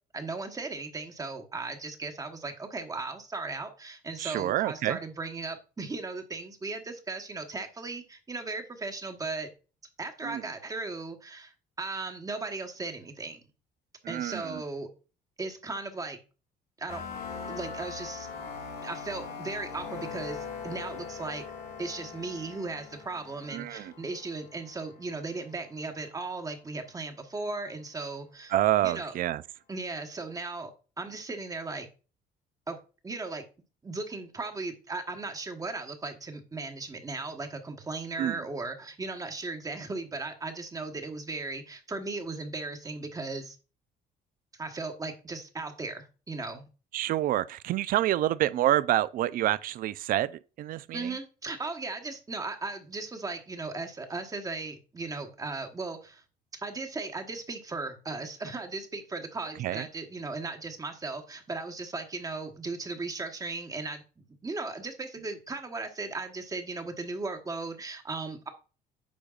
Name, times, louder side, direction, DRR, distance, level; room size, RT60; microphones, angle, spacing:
voice 1, 0.1-9.5 10.0-13.4 14.1-14.9 15.4-16.2 16.8-17.0 17.5-18.3 18.8-21.4 21.8-28.6 28.8-29.2 29.7-30.7 31.0-31.9 32.7-32.8 33.0-33.5 33.8-43.6 44.6-46.7 50.9-56.2 56.6-64.0 64.4-68.5, right 3 dB, 20° right, 1.1 m, -37 dB
voice 2, 4.2-5.0 10.2-10.4 14.0-14.6 23.5-23.9 28.5-29.4 38.2-38.4 46.9-51.2 59.6-59.9, right 13 dB, 55° right, 0.4 m, -28 dB
sound 1, 16.9-25.5, left 5 dB, 80° left, 2.6 m, -41 dB
8.6 x 5.1 x 2.4 m
cardioid pair, 110°, 17 cm